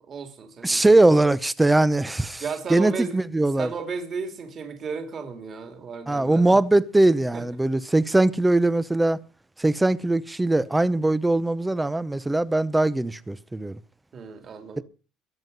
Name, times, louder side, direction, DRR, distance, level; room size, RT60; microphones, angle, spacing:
voice 1, 0.1-1.0 2.4-3.2 3.6-6.6 7.3-7.4 14.1-14.8, right 5 dB, 30° right, 2.9 m, -34 dB
voice 2, 0.6-2.4 2.7-3.7 6.1-9.2 9.6-13.8 14.8-14.9, right 2 dB, 10° right, 0.7 m, -21 dB
22.0 x 7.9 x 5.4 m
cardioid pair, 150°, 0 cm